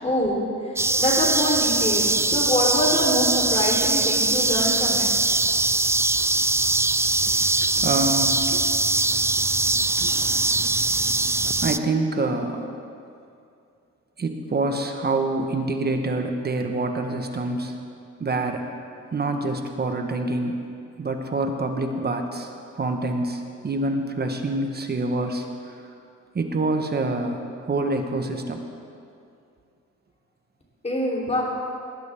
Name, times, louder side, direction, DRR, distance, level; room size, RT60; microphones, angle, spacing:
voice 1, 0.0-5.1 30.8-31.4, equal, 20° left, -2 dB, 3.8 m, -25 dB
sound 1, 0.8-11.8, right 2 dB, 10° right, 0.3 m, -22 dB
voice 2, 7.2-8.7 10.0-10.1 11.6-12.7 14.2-17.7 18.2-18.7 19.1-20.6 21.0-22.5 22.8-25.8 26.3-28.6, right 2 dB, 35° right, 4 dB, 1.4 m, -26 dB
19.5 x 11.5 x 3.7 m, 2.4 s
cardioid pair, 90°, 30 cm